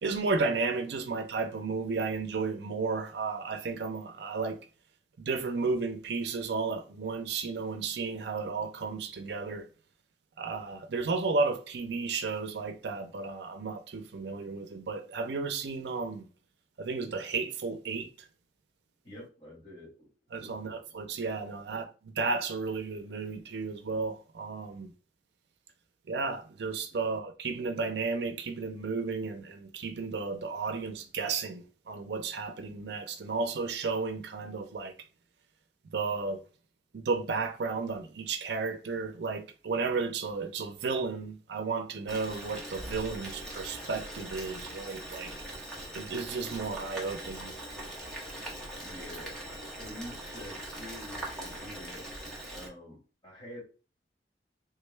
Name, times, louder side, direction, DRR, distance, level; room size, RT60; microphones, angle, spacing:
voice 1, 0.0-4.6 5.2-9.7 10.4-16.3 16.8-18.1 20.3-24.9 26.1-34.9 35.9-36.4 36.9-45.3 45.9-47.5, right 4 dB, 70° right, 0.5 m, -33 dB
voice 2, 19.0-20.1 20.4-20.7 21.5-21.6 26.9-27.0 48.8-52.1 52.5-53.6, equal, 30° left, 1.8 m, -47 dB
Boiling, 42.1-52.7, right 1 dB, 5° left, 0.9 m, -41 dB
3.5 x 2.2 x 3.2 m
head